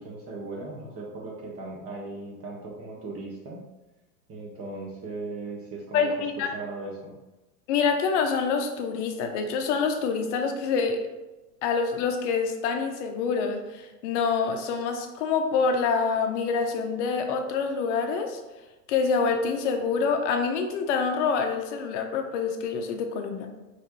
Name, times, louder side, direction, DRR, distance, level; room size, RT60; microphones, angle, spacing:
voice 1, 0.0-3.6 4.3-6.1 6.5-7.1, right 3 dB, 30° right, -2 dB, 1.4 m, -38 dB
voice 2, 5.9-6.5 7.7-11.0 11.6-18.4 18.9-23.5, left 5 dB, 50° left, 5 dB, 0.8 m, -26 dB
4.8 x 3.2 x 3.0 m, 1.1 s
hypercardioid pair, 95°, 48 cm